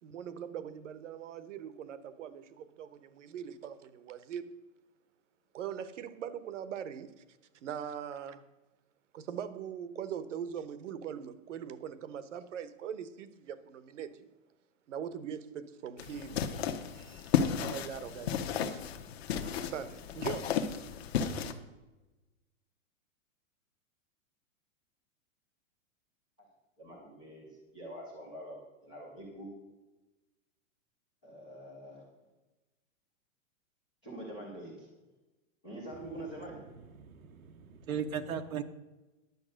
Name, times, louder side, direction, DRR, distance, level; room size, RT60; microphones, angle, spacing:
voice 1, 0.0-4.6 5.5-7.2 7.6-8.4 9.1-14.3 14.9-16.5 16.9-18.9 19.4-20.6, right 8 dB, 60° right, 1.0 m, -41 dB
sound 1, 16.0-21.5, left 7 dB, 50° left, 1.0 m, -33 dB
voice 2, 26.8-29.5 31.2-32.0 34.0-34.9 35.6-36.6, right 1 dB, 5° left, 0.4 m, -45 dB
voice 3, 37.0-38.6, right 7 dB, 90° right, 1.2 m, -37 dB
10.5 x 7.1 x 6.3 m
hypercardioid pair, 170°, 41 cm